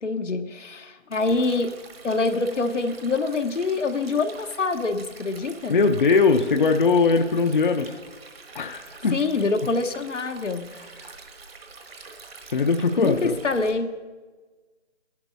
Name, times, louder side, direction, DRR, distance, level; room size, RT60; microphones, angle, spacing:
voice 1, 0.0-1.7 2.0-5.7 9.1-10.7 13.0-13.9, left 3 dB, 85° left, 7 dB, 1.1 m, -25 dB
Stream, 1.1-13.7, right 4 dB, 55° right, 1.5 m, -45 dB
voice 2, 5.7-8.0 8.5-9.2 12.5-13.3, left 4 dB, 45° left, 5 dB, 0.6 m, -20 dB
18.0 x 11.5 x 2.6 m, 1.3 s
figure-of-eight pair, 160°, 36 cm